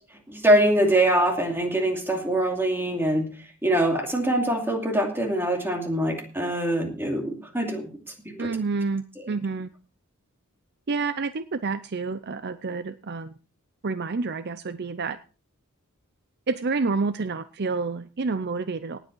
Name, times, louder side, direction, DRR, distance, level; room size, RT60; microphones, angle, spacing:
voice 1, 0.3-3.3 3.6-7.9 8.2-8.5, right 1 dB, 10° right, 3 dB, 2.5 m, -23 dB
voice 2, 8.4-9.7 10.9-13.3 13.8-15.2 16.5-19.0, right 4 dB, 50° right, 13 dB, 0.6 m, -29 dB
18.5 x 8.1 x 4.5 m, 0.37 s
head